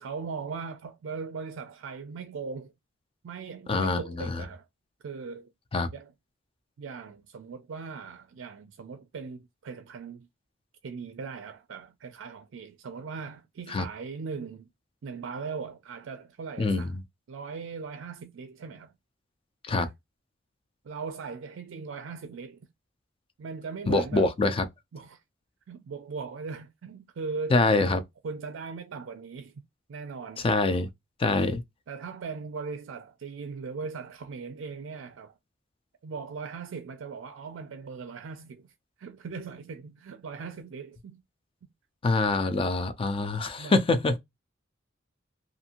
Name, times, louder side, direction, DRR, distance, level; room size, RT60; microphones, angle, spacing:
voice 1, 0.0-2.7 3.2-4.7 5.0-5.5 5.9-6.1 6.8-10.3 10.8-14.7 15.0-16.9 17.3-18.9 19.7-19.9 20.8-22.6 23.4-24.3 24.9-25.2 25.7-27.6 28.2-29.6 29.9-30.5 31.9-35.4 36.0-38.7 39.0-41.2 43.6-43.8, right 5 dB, 70° right, 0.4 m, -39 dB
voice 2, 3.7-4.4 5.7-5.9 13.7-13.9 16.6-16.9 19.6-19.9 23.9-24.7 27.5-28.0 30.4-30.9 31.2-31.6 42.0-44.2, left 3 dB, 30° left, 0.4 m, -25 dB
2.6 x 2.5 x 2.8 m
head